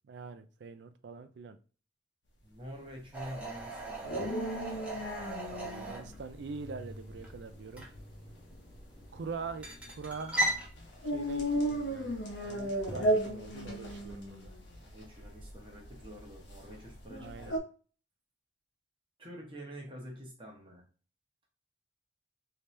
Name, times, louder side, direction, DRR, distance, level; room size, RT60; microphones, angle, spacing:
voice 1, 0.1-1.6 5.5-7.8 9.1-10.4 11.0-12.2 12.4-14.5 17.2-17.6, right 4 dB, 75° right, 0.4 m, -43 dB
voice 2, 2.4-5.1 14.8-17.6 19.2-20.8, equal, 30° right, 0.9 m, -47 dB
sound 1, 3.1-10.7, right 1 dB, 5° right, 0.9 m, -39 dB
sound 2, 3.3-17.6, right 1 dB, 90° left, 0.9 m, -36 dB
3.3 x 2.8 x 3.2 m
head